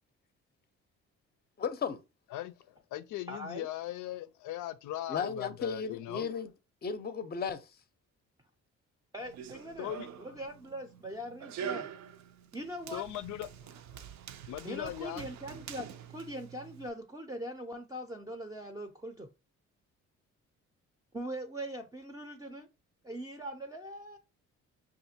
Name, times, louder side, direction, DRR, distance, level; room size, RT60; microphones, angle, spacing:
voice 1, 1.6-2.0 5.1-6.5 6.8-7.6, left 6 dB, 35° left, 0.6 m, -34 dB
voice 2, 2.3-6.3 9.8-10.1 12.9-14.1 14.5-15.3, left 13 dB, 80° left, 0.5 m, -39 dB
voice 3, 3.3-3.7 9.1-9.9 10.2-11.9 12.5-13.0 14.6-19.3 21.1-22.7 23.0-24.2, equal, 10° right, 0.5 m, -41 dB
Run, 9.2-16.9, right 8 dB, 65° right, 0.5 m, -45 dB
5.6 x 2.5 x 2.7 m
cardioid pair, 90°, 30 cm